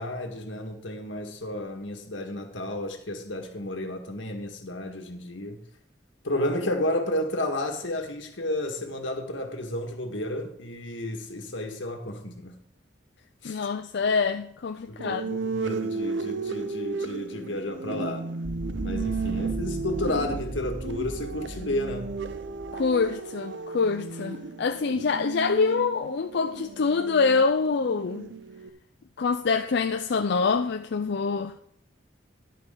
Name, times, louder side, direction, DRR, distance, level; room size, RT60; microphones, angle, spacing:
voice 1, 0.0-5.6 6.2-12.6 13.4-13.7 14.9-18.3 18.8-22.2 25.0-25.1, left 1 dB, 90° left, 1.8 m, -32 dB
voice 2, 13.4-15.3 22.7-28.3 29.2-31.6, left 4 dB, 65° left, 0.5 m, -25 dB
sound 1, 15.0-28.7, right 4 dB, 70° right, 0.7 m, -34 dB
sound 2, 18.4-23.1, right 1 dB, 10° right, 1.3 m, -37 dB
11.0 x 11.0 x 3.8 m
head